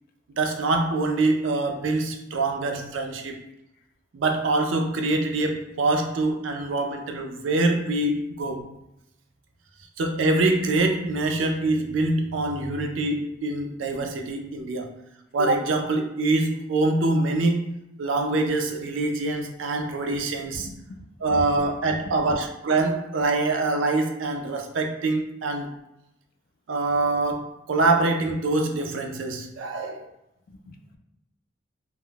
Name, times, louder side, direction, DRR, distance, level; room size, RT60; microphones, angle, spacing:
voice 1, 0.3-3.4 4.1-8.7 10.0-14.9 15.3-17.7 18.0-20.7 21.2-25.7 26.7-30.1, right 2 dB, 80° right, 0.4 m, -24 dB
voice 2, 20.6-21.1 21.6-22.1 30.5-31.0, left 2 dB, 55° left, 0.4 m, -44 dB
2.3 x 2.1 x 3.7 m
head